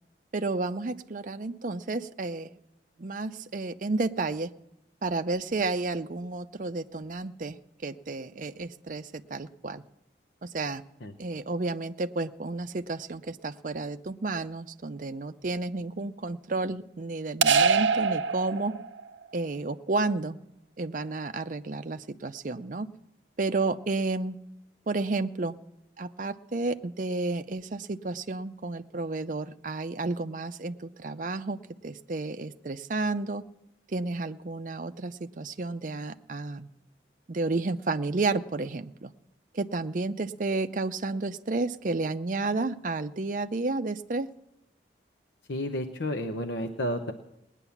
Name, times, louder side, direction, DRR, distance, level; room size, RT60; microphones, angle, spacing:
voice 1, 0.3-2.5 3.0-4.5 5.0-7.6 7.8-9.8 10.4-10.8 11.2-18.7 19.3-20.4 20.8-22.9 23.4-24.4 24.9-25.6 26.0-33.4 33.9-36.7 37.3-39.1 39.5-44.3, right 3 dB, 45° right, 9 dB, 0.5 m, -31 dB
sound 1, 17.4-19.1, right 5 dB, 90° right, 0.6 m, -23 dB
voice 2, 45.5-47.1, left 1 dB, 75° left, 6 dB, 0.9 m, -31 dB
19.0 x 9.9 x 7.1 m, 0.84 s
head